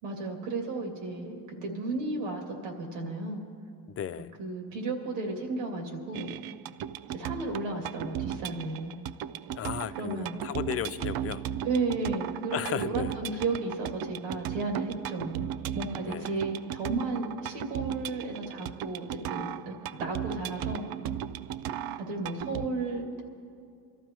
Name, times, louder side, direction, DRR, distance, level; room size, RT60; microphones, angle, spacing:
voice 1, 0.0-3.4 4.4-6.3 7.0-9.0 9.9-10.3 11.6-15.5 15.7-20.9 22.0-23.2, right 3 dB, 90° right, 1 dB, 2.6 m, -33 dB
voice 2, 4.0-4.3 9.5-11.4 12.5-13.1 16.1-16.3, left 10 dB, 35° left, 14 dB, 0.5 m, -34 dB
sound 1, 6.1-22.7, right 10 dB, 55° right, 0.5 m, -36 dB
24.5 x 13.5 x 3.1 m, 2.4 s
supercardioid pair, 85°, 44 cm